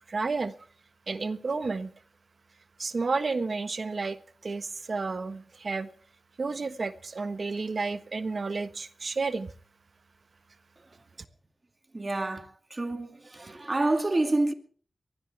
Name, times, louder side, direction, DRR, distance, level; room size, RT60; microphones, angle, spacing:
voice 1, 0.1-0.5 1.1-1.9 2.8-5.9 6.4-9.5, right 4 dB, 60° right, 1.3 m, -31 dB
voice 2, 11.9-14.5, right 2 dB, 35° right, 2.4 m, -28 dB
22.5 x 16.5 x 3.4 m
cardioid pair, 55°, 0 cm